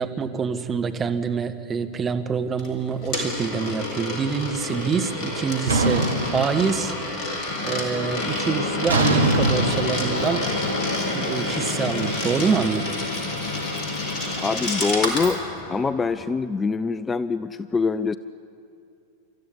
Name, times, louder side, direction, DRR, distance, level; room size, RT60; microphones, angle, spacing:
voice 1, 0.0-6.9 7.6-10.5 11.1-12.9, right 6 dB, 20° right, 7 dB, 1.3 m, -26 dB
Coin (dropping), 2.6-15.4, left 2 dB, 35° left, 4.5 m, -30 dB
sound 1, 5.7-7.2 7.6-8.0 8.9-11.9, right 2 dB, 75° right, 1.4 m, -24 dB
sound 2, 7.5-16.3, left 2 dB, 60° left, 2.4 m, -30 dB
voice 2, 14.4-15.4 15.7-18.2, left 4 dB, 15° left, 14 dB, 0.5 m, -24 dB
28.5 x 14.0 x 9.9 m, 2.6 s
figure-of-eight pair, 90°, 0 cm